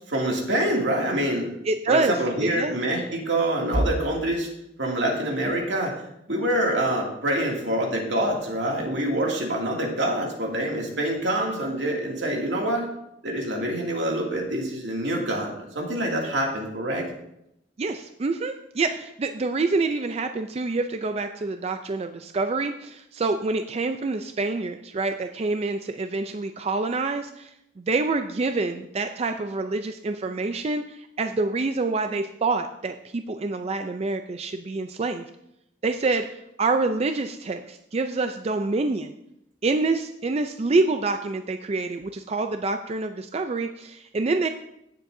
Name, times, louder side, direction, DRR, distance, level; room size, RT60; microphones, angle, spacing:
voice 1, 0.1-1.5 1.9-4.5 4.8-6.0 6.3-12.9 13.2-17.1, right 1 dB, 80° right, -1 dB, 2.4 m, -26 dB
voice 2, 1.7-2.1 2.4-2.8 17.8-35.2 35.8-39.1 39.6-44.5, right 3 dB, 35° right, 7 dB, 0.4 m, -27 dB
16.5 x 7.4 x 2.7 m, 0.80 s
head